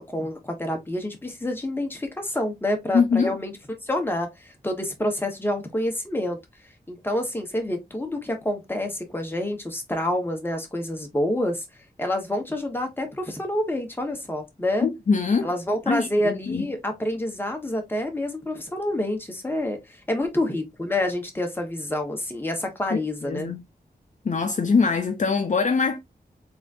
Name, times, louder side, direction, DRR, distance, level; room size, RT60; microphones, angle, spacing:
voice 1, 0.0-3.5 3.8-6.4 6.9-11.6 12.0-14.9 15.4-23.5, left 1 dB, 15° left, 1.3 m, -28 dB
voice 2, 2.9-3.3 14.8-15.5 15.9-16.7 22.9-23.6 24.2-26.0, left 5 dB, 50° left, 0.6 m, -23 dB
4.0 x 3.7 x 2.6 m
wide cardioid pair, 130°, 16 cm